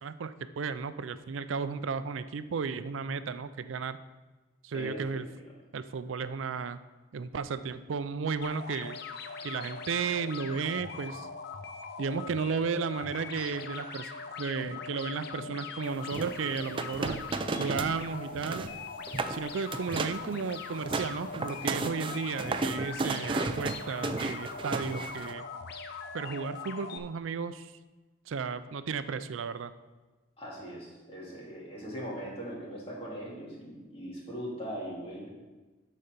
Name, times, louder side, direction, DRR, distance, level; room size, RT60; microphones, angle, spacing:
voice 1, 0.0-4.0 4.6-5.3 5.7-6.8 7.1-9.0 9.4-11.3 12.0-14.1 14.4-17.2 17.6-18.6 19.3-25.5 26.1-27.7 28.3-29.7, right 5 dB, 85° right, 13 dB, 0.4 m, -34 dB
voice 2, 4.7-5.2 30.4-35.3, equal, 30° left, -5 dB, 2.5 m, -40 dB
sound 1, 8.4-27.0, left 5 dB, 55° left, 0.7 m, -41 dB
sound 2, 16.1-18.0 18.2-18.7 19.1-19.4 19.7-20.2 20.6-25.3, right 3 dB, 25° right, 0.4 m, -33 dB
12.0 x 4.2 x 5.2 m, 1.2 s
head